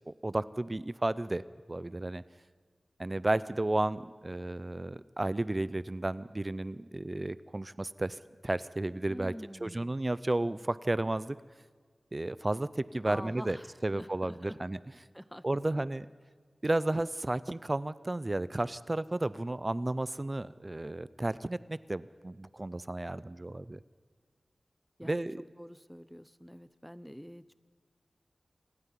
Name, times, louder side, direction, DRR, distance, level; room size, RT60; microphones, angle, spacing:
voice 1, 0.1-1.4 1.7-2.2 3.0-9.3 9.6-11.4 12.1-13.6 13.8-14.8 15.4-16.1 16.6-23.8 25.0-25.4, right 2 dB, 30° right, 17 dB, 0.5 m, -33 dB
voice 2, 9.1-9.9 13.0-14.6 15.1-15.5 15.8-15.9 25.0-25.3 25.6-27.5, equal, ahead, 16 dB, 0.7 m, -46 dB
27.5 x 9.7 x 9.9 m, 1.5 s
wide cardioid pair, 70°, 0 cm